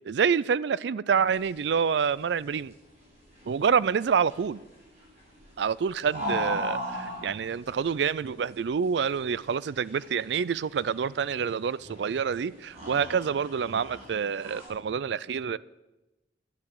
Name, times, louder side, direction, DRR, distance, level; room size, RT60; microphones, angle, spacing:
voice 1, 0.0-2.7 3.5-4.6 5.6-15.6, right 6 dB, 75° right, 0.4 m, -27 dB
romanian buffalo milking, 1.2-14.7, equal, 35° right, 6.3 m, -39 dB
10.5 x 10.5 x 8.0 m
head